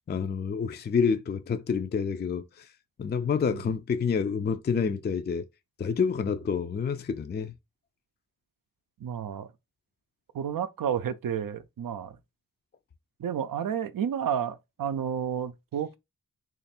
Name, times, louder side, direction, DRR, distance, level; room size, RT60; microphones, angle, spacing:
voice 1, 0.1-2.7 3.0-5.5 5.8-7.5, left 6 dB, 30° left, 0.4 m, -28 dB
voice 2, 9.0-9.5 10.3-12.2 13.2-16.0, right 8 dB, 75° right, 0.5 m, -31 dB
3.2 x 2.4 x 4.2 m
cardioid pair, 40°, 34 cm